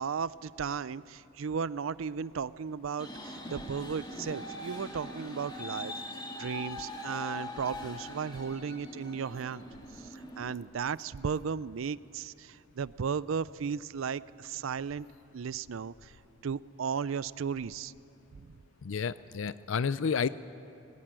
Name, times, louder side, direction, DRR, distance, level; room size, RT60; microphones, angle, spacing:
voice 1, 0.0-5.9 6.4-9.6 10.4-15.1 15.3-15.9 16.4-17.9, right 6 dB, 85° right, 19 dB, 0.5 m, -35 dB
sound 1, 3.0-10.6, left 1 dB, 20° left, 2.2 m, -42 dB
voice 2, 18.8-20.3, left 6 dB, 75° left, 15 dB, 0.5 m, -30 dB
20.0 x 19.5 x 8.9 m, 2.7 s
head